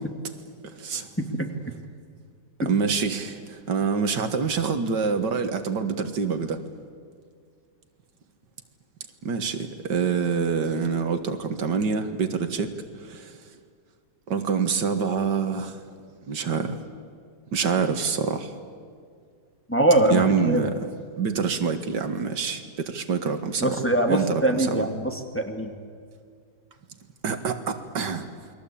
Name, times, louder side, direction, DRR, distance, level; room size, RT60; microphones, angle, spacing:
voice 1, 0.6-1.1 2.7-6.6 9.2-12.7 13.0-13.4 14.3-15.8 16.3-16.8 17.5-18.5 20.1-20.9 21.2-23.8 24.1-24.9 27.2-28.3, right 5 dB, 80° right, 8 dB, 2.2 m, -26 dB
voice 2, 19.7-20.7 23.6-25.7, right 1 dB, 5° left, 3 dB, 2.0 m, -23 dB
29.0 x 22.0 x 8.6 m, 2.1 s
omnidirectional pair, 1.9 m